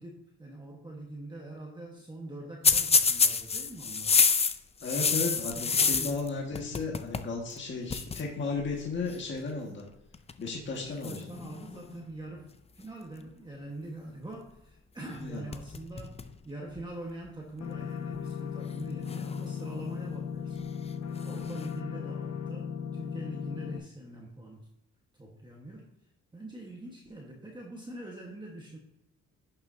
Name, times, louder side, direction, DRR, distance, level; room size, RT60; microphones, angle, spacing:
voice 1, 0.0-4.2 4.8-5.4 5.7-6.2 10.6-20.7 21.2-24.7 25.2-25.9 26.3-28.8, right 2 dB, 15° right, -2 dB, 1.3 m, -44 dB
sound 1, 2.6-6.3 6.6-7.3 7.6-7.7 7.9-8.2 9.1-9.4 10.1-10.5 11.0-12.1 15.1-15.2 15.5-16.3 16.8-16.9 17.8-17.9 19.0-19.9 21.1-21.7, left 5 dB, 20° left, 0.5 m, -28 dB
voice 2, 4.8-9.8 10.4-11.2 15.2-15.4, left 4 dB, 40° left, -2 dB, 1.7 m, -34 dB
sound 2, 17.6-23.8, left 7 dB, 60° left, 0.9 m, -37 dB
11.0 x 6.8 x 2.7 m, 0.86 s
cardioid pair, 120°, 29 cm